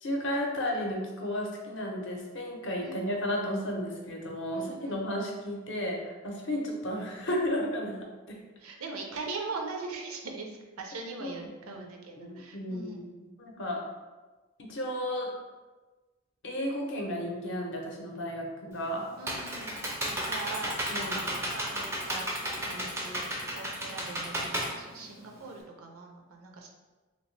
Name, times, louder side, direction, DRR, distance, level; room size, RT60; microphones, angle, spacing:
voice 1, 0.0-8.0 8.3-8.4 11.2-11.3 11.7-11.8 12.2-13.1 13.4-13.8 14.6-15.3 16.4-19.1 20.9-21.2, equal, 55° left, 0 dB, 0.6 m, -33 dB
voice 2, 4.5-5.0 8.6-13.0 19.1-26.7, right 3 dB, 75° right, 1 dB, 0.5 m, -41 dB
Computer keyboard, 18.7-25.6, right 1 dB, 10° right, 0.4 m, -33 dB
3.0 x 2.8 x 3.1 m, 1.2 s
head